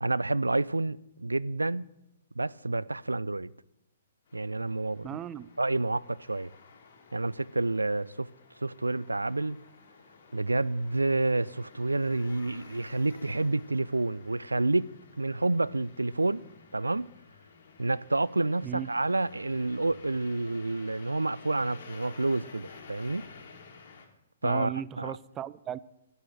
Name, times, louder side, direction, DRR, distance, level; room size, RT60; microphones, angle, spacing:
voice 1, 0.0-1.8 2.4-3.5 4.3-5.2 5.6-6.5 7.1-8.3 8.6-9.6 10.3-16.5 16.7-17.1 17.8-23.3 24.4-25.2, right 2 dB, 85° right, 0.3 m, -29 dB
sound 1, 4.3-24.1, left 5 dB, 55° left, 2.2 m, -53 dB
voice 2, 5.0-5.5 18.6-18.9 24.4-25.8, right 11 dB, 20° right, 0.4 m, -36 dB
10.5 x 6.6 x 8.9 m
figure-of-eight pair, 120°, 0 cm